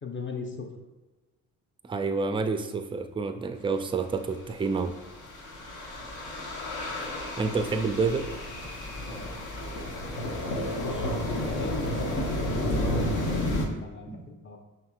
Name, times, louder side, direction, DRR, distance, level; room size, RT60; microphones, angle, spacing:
voice 1, 0.0-0.7 10.7-12.3 12.8-14.6, left 4 dB, 30° left, 2 dB, 0.8 m, -39 dB
voice 2, 1.8-5.0 7.4-8.3 14.1-14.3, right 4 dB, 15° right, 9 dB, 0.3 m, -28 dB
sound 1, 4.7-13.6, left 1 dB, 65° left, 1.0 m, -31 dB
5.5 x 3.1 x 2.4 m, 1.2 s
hypercardioid pair, 50°, 40 cm